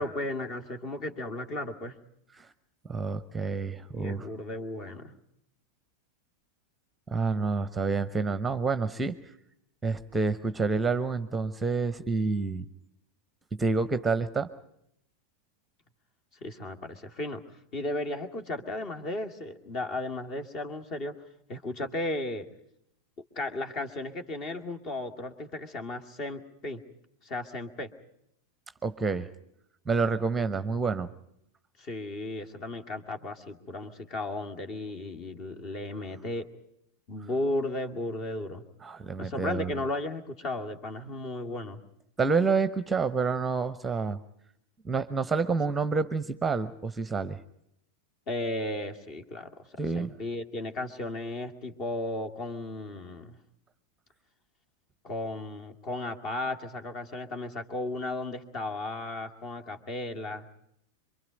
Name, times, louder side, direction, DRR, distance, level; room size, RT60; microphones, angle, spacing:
voice 1, 0.0-2.0 3.9-5.1 16.4-17.4 17.7-21.1 21.5-22.5 23.2-26.8 27.2-27.9 31.8-36.5 37.1-38.6 39.2-41.8 48.3-49.7 49.9-53.4 55.0-60.5, left 2 dB, 35° left, 7 dB, 2.3 m, -35 dB
voice 2, 2.9-4.3 7.1-9.2 9.8-12.6 13.5-14.5 28.8-29.3 29.9-31.1 38.8-39.7 42.2-44.2 44.8-47.4 49.8-50.1, right 4 dB, 10° right, 13 dB, 0.9 m, -28 dB
26.5 x 24.0 x 5.2 m, 0.76 s
figure-of-eight pair, 90°, 0 cm